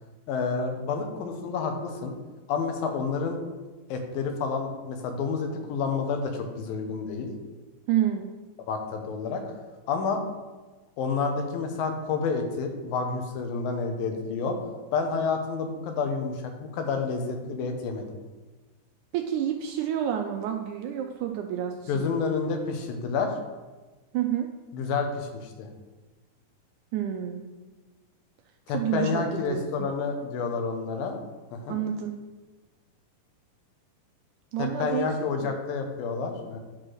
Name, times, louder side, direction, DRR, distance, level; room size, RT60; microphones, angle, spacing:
voice 1, 0.3-2.1 2.5-3.4 3.9-7.3 8.7-9.4 9.9-10.2 11.0-14.6 14.9-18.1 21.9-23.3 24.7-25.7 28.7-31.2 31.5-31.8 34.6-36.6, left 5 dB, 85° left, 5 dB, 2.8 m, -29 dB
voice 2, 7.9-8.3 19.1-22.2 24.1-24.5 26.9-27.5 28.7-29.9 31.7-32.2 34.5-35.1, right 10 dB, 80° right, 4 dB, 1.8 m, -29 dB
9.7 x 4.4 x 6.2 m, 1.2 s
omnidirectional pair, 4.0 m